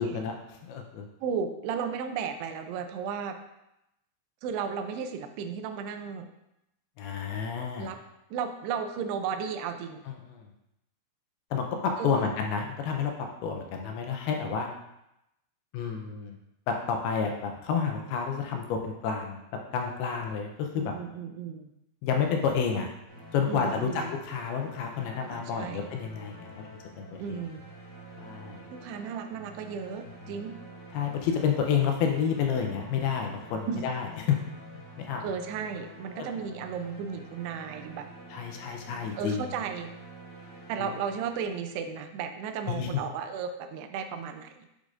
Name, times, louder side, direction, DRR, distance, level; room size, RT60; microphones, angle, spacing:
voice 1, 0.0-1.1 7.0-7.9 10.3-10.4 11.5-13.1 13.4-14.7 15.7-16.4 16.7-19.4 19.7-20.9 22.0-22.9 23.3-23.9 24.2-26.6 27.0-27.4 28.2-28.7 30.9-34.4 35.0-35.3 38.3-39.4 40.8-40.9 42.7-43.0, left 6 dB, 80° left, 3 dB, 2.5 m, -30 dB
voice 2, 1.2-3.4 4.4-6.3 7.8-8.0 8.3-10.0 12.0-12.3 20.8-21.7 23.5-24.1 25.3-25.9 27.2-27.7 28.7-30.6 33.7-33.8 35.2-38.1 39.2-39.9 40.7-44.7, right 6 dB, 85° right, 7 dB, 2.6 m, -34 dB
sound 1, 23.1-42.0, right 1 dB, 50° left, 0.7 m, -48 dB
10.0 x 4.9 x 2.5 m, 0.86 s
omnidirectional pair, 4.7 m